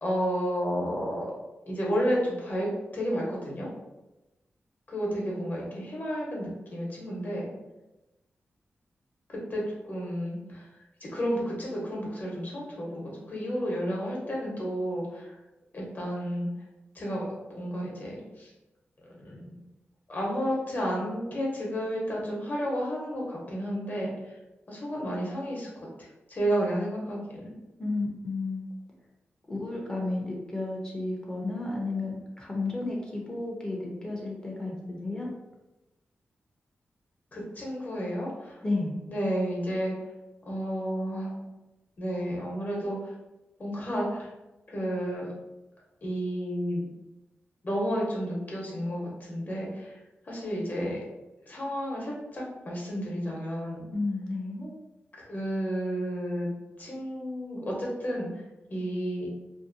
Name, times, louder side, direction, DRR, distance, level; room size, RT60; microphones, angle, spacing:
voice 1, 0.0-1.3 1.7-3.7 4.9-7.5 9.3-10.7 11.0-15.3 15.7-16.5 16.9-18.5 19.1-19.6 20.1-24.4 24.7-25.9 26.3-27.5 37.3-38.6 39.1-39.9 40.4-41.5 42.0-43.0 43.6-44.3 44.7-45.3 46.0-46.9 47.6-50.0 50.2-51.0 51.5-53.8 55.2-56.5 56.8-58.3 58.7-59.3, equal, 45° left, -3 dB, 0.9 m, -31 dB
voice 2, 27.8-28.7 29.5-35.3 38.6-38.9 53.9-54.7, left 2 dB, 20° left, -2 dB, 0.6 m, -32 dB
2.6 x 2.1 x 2.6 m, 1.0 s
cardioid pair, 70°, 4 cm